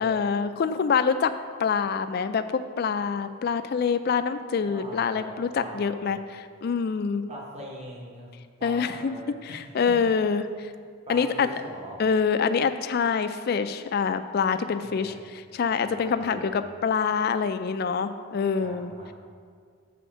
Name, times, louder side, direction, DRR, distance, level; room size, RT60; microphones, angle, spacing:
voice 1, 0.0-1.3 1.6-7.2 8.6-9.2 9.4-10.7 11.1-11.5 12.0-18.9, left 6 dB, 45° left, 10 dB, 0.3 m, -26 dB
voice 2, 4.6-6.2 7.3-8.3 8.6-9.6 10.3-10.5 11.1-12.0 14.8-15.3 15.8-16.5 18.6-19.1, right 1 dB, 30° right, -2 dB, 0.9 m, -42 dB
7.0 x 4.2 x 6.0 m, 2.1 s
head